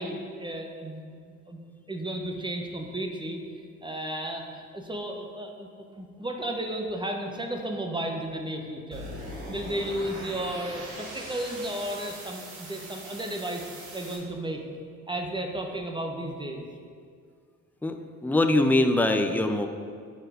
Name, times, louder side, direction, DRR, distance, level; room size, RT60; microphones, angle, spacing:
voice 1, 0.0-1.6 1.9-3.4 3.8-5.7 5.9-9.0 9.5-14.6 15.1-16.7, right 1 dB, 10° right, 3 dB, 1.0 m, -33 dB
sound 1, 8.9-14.2, right 1 dB, 85° right, 1.2 m, -41 dB
voice 2, 17.8-19.7, left 1 dB, 5° left, 6 dB, 0.5 m, -23 dB
6.2 x 4.3 x 5.1 m, 2.1 s
hypercardioid pair, 45°, 39 cm